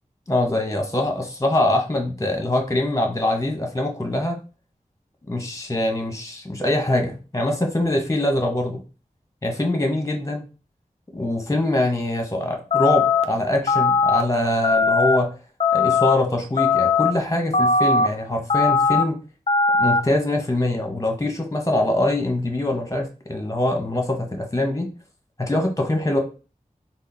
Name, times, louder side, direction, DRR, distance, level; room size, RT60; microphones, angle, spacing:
voice 1, 0.3-4.4 5.3-8.8 9.4-10.4 11.1-15.3 15.7-19.2 19.8-24.9 25.4-26.2, left 1 dB, 25° left, 2 dB, 1.1 m, -23 dB
sound 1, 12.7-13.2 13.7-14.2 14.6-15.2 15.6-16.1 16.6-17.1 17.5-18.1 18.5-19.0 19.5-20.0, left 4 dB, 45° left, 0.4 m, -19 dB
4.1 x 2.1 x 4.0 m, 0.33 s
wide cardioid pair, 55°, 14 cm